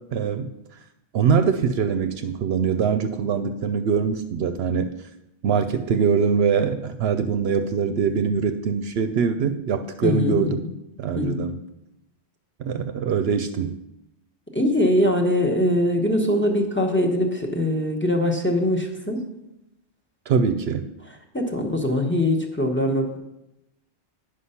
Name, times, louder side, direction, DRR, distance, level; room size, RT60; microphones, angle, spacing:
voice 1, 0.1-0.5 1.1-4.9 5.4-10.6 11.0-11.6 12.6-13.8 20.3-20.9, right 6 dB, 70° right, 9 dB, 0.8 m, -23 dB
voice 2, 10.0-10.7 11.1-11.5 14.5-19.2 21.3-23.2, left 1 dB, 10° left, 3 dB, 1.0 m, -22 dB
10.0 x 5.2 x 5.6 m, 0.90 s
omnidirectional pair, 1.2 m